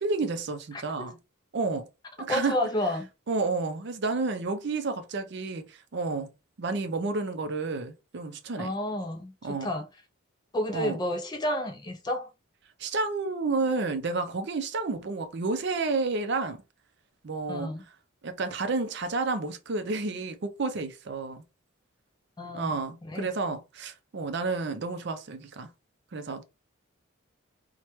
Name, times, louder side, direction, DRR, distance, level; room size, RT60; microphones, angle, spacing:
voice 1, 0.0-1.1 1.5-1.9 2.2-2.6 3.3-6.3 6.6-8.7 9.4-9.7 10.7-11.0 12.8-16.6 17.2-17.7 18.2-21.4 22.5-25.7 26.1-26.4, right 3 dB, 50° right, 0.5 m, -30 dB
voice 2, 0.7-1.1 2.3-3.1 8.6-9.9 10.5-12.3 17.5-17.8 22.4-22.8 23.0-23.3, left 1 dB, 20° left, 0.3 m, -31 dB
2.9 x 2.2 x 3.0 m
head